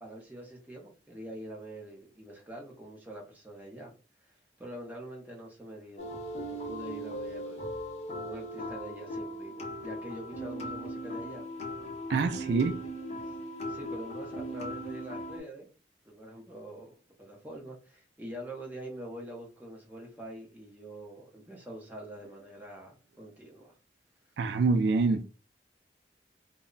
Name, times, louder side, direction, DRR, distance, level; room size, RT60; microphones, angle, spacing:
voice 1, 0.0-3.9 4.2-6.1 6.5-7.7 8.2-11.5 12.3-13.4 13.7-15.7 16.0-23.8, right 1 dB, 10° right, 0.7 m, -45 dB
sound 1, 6.0-15.4, equal, 40° left, 0.7 m, -38 dB
voice 2, 12.1-12.8 24.4-25.2, right 4 dB, 75° right, 0.3 m, -25 dB
2.1 x 2.1 x 3.7 m
head